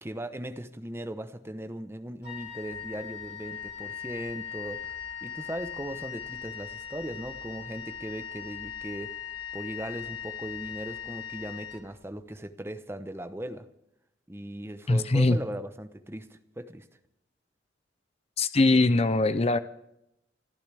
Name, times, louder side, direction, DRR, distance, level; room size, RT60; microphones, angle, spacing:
voice 1, 0.0-4.9 5.2-9.1 9.5-13.7 14.3-16.9, right 1 dB, 15° right, 10 dB, 0.9 m, -38 dB
Wind instrument woodwind instrument, 2.2-12.3, left 8 dB, 55° left, 3.0 m, -40 dB
voice 2, 14.9-15.4 18.4-19.6, left 2 dB, 30° left, 12 dB, 0.5 m, -22 dB
28.5 x 13.5 x 3.4 m, 0.82 s
head